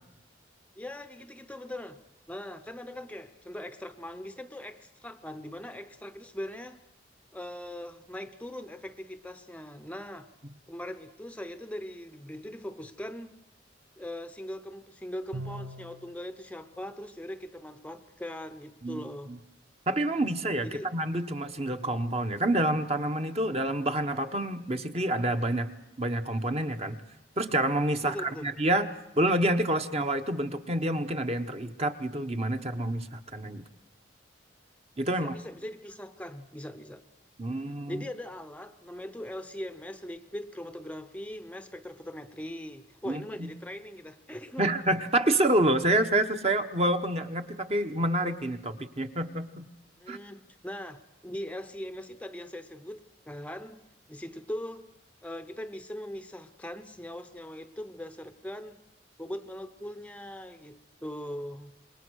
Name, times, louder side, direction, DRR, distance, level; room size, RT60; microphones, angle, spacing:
voice 1, 0.8-2.0 2.3-6.8 7.3-10.3 10.7-13.3 14.0-19.3 20.6-20.9 28.0-28.5 35.1-37.0 37.9-44.7 50.0-54.9 55.2-58.8 59.2-61.7, left 1 dB, 5° left, 10 dB, 0.8 m, -40 dB
Bowed string instrument, 15.3-16.2, right 1 dB, 85° right, 1.4 m, -39 dB
voice 2, 19.9-25.7 26.0-27.0 27.4-28.9 29.2-33.6 35.0-35.3 37.4-38.0 43.1-43.5 44.6-49.6 50.1-50.2, right 1 dB, 35° right, 7 dB, 1.1 m, -28 dB
27.0 x 21.5 x 6.4 m, 0.94 s
head